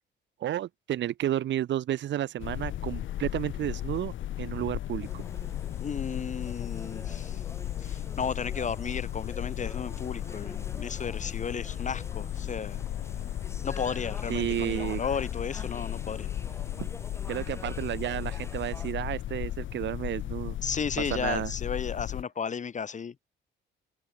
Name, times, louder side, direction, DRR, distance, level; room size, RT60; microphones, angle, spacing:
voice 1, 0.4-5.2 14.3-15.0 16.8-16.9 17.3-20.6 21.1-21.5, right 12 dB, 65° right, 0.9 m, -32 dB
sound 1, 2.4-22.2, left 13 dB, 75° left, 1.6 m, -35 dB
sound 2, 5.0-18.9, left 2 dB, 15° left, 7.3 m, -46 dB
voice 2, 5.8-7.4 7.8-12.8 13.6-16.3 20.6-23.1, left 6 dB, 40° left, 1.2 m, -34 dB
open air
cardioid pair, 90°, 20 cm